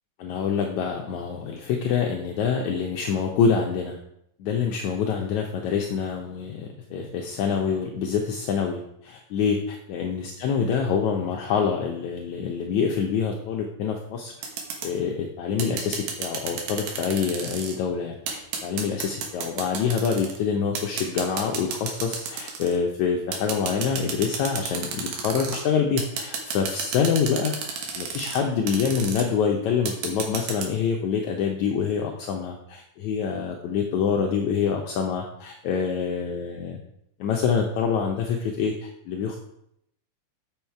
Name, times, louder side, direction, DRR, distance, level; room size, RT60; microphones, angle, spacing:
voice 1, 0.2-4.0 4.4-14.5 14.8-27.5 28.0-36.8 37.2-39.4, left 6 dB, 80° left, 1 dB, 1.7 m, -26 dB
sound 1, 14.4-14.9 15.6-17.8 18.3-20.4 20.7-22.8 23.3-25.6 26.0-28.4 28.7-29.2 29.9-30.7, right 5 dB, 80° right, 3.1 m, -32 dB
7.2 x 7.1 x 4.6 m, 0.74 s
omnidirectional pair, 4.2 m